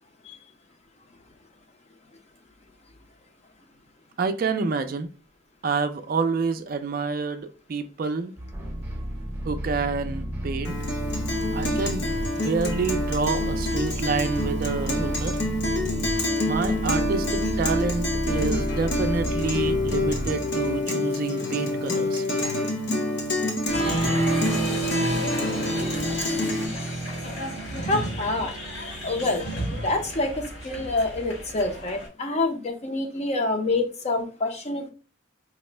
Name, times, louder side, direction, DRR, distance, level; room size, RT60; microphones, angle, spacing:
voice 1, 4.2-5.1 5.6-8.3 9.4-10.8 11.5-15.4 16.5-22.2, right 4 dB, 45° right, 0.3 m, -28 dB
sound 1, 8.4-20.8, equal, 10° right, 0.7 m, -31 dB
Guitar, 10.6-26.7, left 2 dB, 55° left, 0.9 m, -27 dB
Applause, 23.7-32.1, right 1 dB, 75° left, 1.7 m, -30 dB
voice 2, 27.8-28.5 29.0-29.4 29.7-34.9, left 2 dB, 35° left, 0.6 m, -27 dB
4.8 x 2.0 x 3.2 m
head